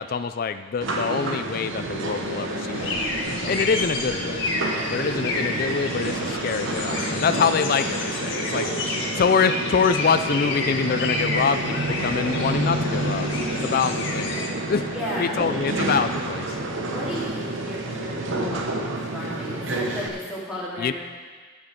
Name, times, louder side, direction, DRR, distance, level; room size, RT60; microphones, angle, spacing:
voice 1, 0.0-3.0 3.5-4.5 4.9-13.3 13.6-14.3 14.7-14.8 15.2-16.6 20.8-20.9, left 5 dB, 45° left, 10 dB, 0.3 m, -25 dB
sound 1, 0.8-20.1, right 2 dB, 60° right, 1.1 m, -29 dB
sound 2, 2.7-14.5, left 3 dB, 60° left, 1.6 m, -30 dB
voice 2, 3.4-4.4 4.9-5.5 14.9-15.6 16.8-20.9, left 1 dB, 5° right, -8 dB, 2.9 m, -35 dB
11.5 x 8.3 x 5.1 m, 1.5 s
head